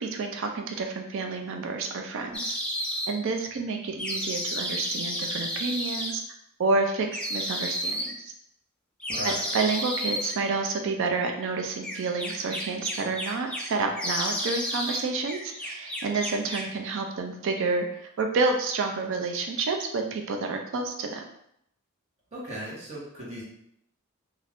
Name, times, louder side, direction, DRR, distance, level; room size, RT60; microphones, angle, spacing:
voice 1, 0.0-2.6 3.1-6.2 6.6-8.3 9.2-21.2, right 3 dB, 65° right, 4 dB, 0.4 m, -29 dB
sound 1, 2.3-3.1 4.0-6.1 7.1-8.1 9.0-10.3 11.8-13.7 14.0-15.0 15.3-16.7, equal, 5° left, 0.4 m, -31 dB
voice 2, 9.1-9.5 22.3-23.4, equal, 35° right, -7 dB, 1.0 m, -37 dB
2.5 x 2.3 x 3.4 m, 0.73 s
head